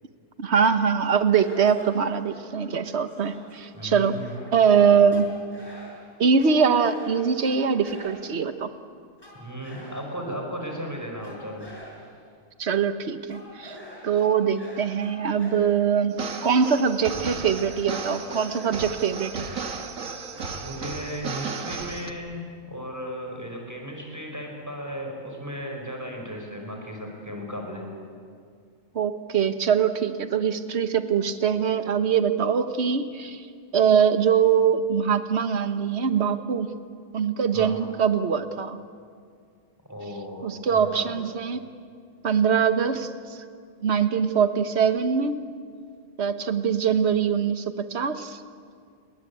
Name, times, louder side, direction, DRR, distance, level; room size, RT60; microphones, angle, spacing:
voice 1, 0.4-4.1 4.5-5.3 6.2-8.7 12.6-13.8 14.0-19.5 28.9-33.5 33.7-36.8 37.1-38.8 40.4-41.6 42.2-43.4 43.8-45.4 46.2-48.4, right 7 dB, 55° right, 10 dB, 1.5 m, -23 dB
sound 1, 1.4-8.6 9.2-10.4 11.2-12.3 13.3-16.1 17.1-20.6, equal, 15° left, 6.4 m, -46 dB
voice 2, 3.7-4.3 4.8-5.2 9.3-11.7 20.6-27.8 37.5-37.8 39.9-41.2, equal, 10° right, 1 dB, 5.2 m, -35 dB
sound 2, 16.1-22.1, right 5 dB, 75° right, 1.9 m, -34 dB
29.5 x 22.5 x 8.5 m, 2.2 s
omnidirectional pair, 1.4 m